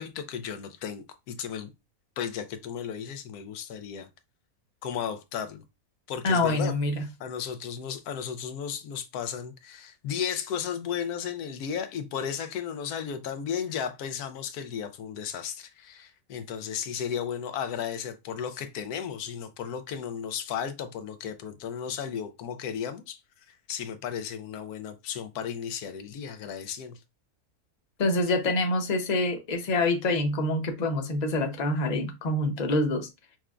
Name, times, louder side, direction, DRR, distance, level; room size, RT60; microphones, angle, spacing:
voice 1, 0.0-1.7 2.2-4.1 4.8-5.6 6.1-6.7 7.2-23.2 23.5-27.0, left 8 dB, 85° left, 1.1 m, -34 dB
voice 2, 6.2-7.0 28.0-33.1, left 2 dB, 35° left, 0.7 m, -26 dB
5.8 x 2.2 x 2.4 m
omnidirectional pair, 1.6 m